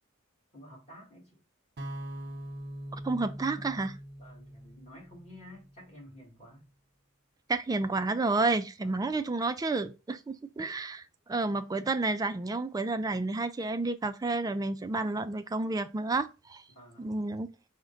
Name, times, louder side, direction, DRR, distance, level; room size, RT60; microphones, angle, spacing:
voice 1, 0.5-1.4 4.2-6.7 8.8-9.0 16.7-17.1, left 1 dB, 30° left, 1.7 m, -51 dB
sound 1, 1.8-5.9, right 1 dB, 50° right, 0.7 m, -42 dB
voice 2, 2.9-4.0 7.5-16.6 17.0-17.5, right 3 dB, 15° right, 0.3 m, -30 dB
4.8 x 2.1 x 3.8 m
head